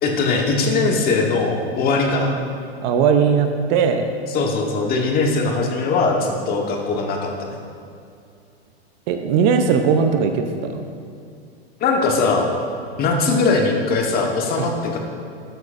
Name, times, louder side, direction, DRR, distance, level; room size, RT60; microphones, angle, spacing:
voice 1, 0.0-2.3 4.3-7.3 11.8-12.5 13.0-15.0, left 3 dB, 30° left, 1 dB, 1.3 m, -20 dB
voice 2, 2.8-4.1 9.1-10.4 10.7-10.8 14.6-14.7, right 6 dB, 45° right, 6 dB, 0.7 m, -18 dB
12.5 x 8.0 x 2.6 m, 2.4 s
hypercardioid pair, 130°, 31 cm